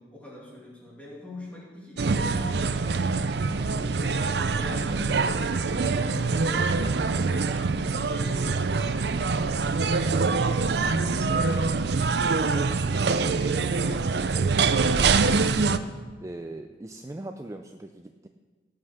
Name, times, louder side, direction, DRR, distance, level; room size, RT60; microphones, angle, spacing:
voice 1, 0.0-3.1 3.8-6.2 6.4-7.5 8.1-12.0 12.4-14.8, left 1 dB, 10° left, -4 dB, 2.6 m, -43 dB
sound 1, 2.0-15.8, right 4 dB, 70° right, 0.5 m, -24 dB
voice 2, 16.2-18.3, right 1 dB, 15° right, 6 dB, 0.4 m, -40 dB
17.0 x 5.8 x 6.5 m, 1.4 s
head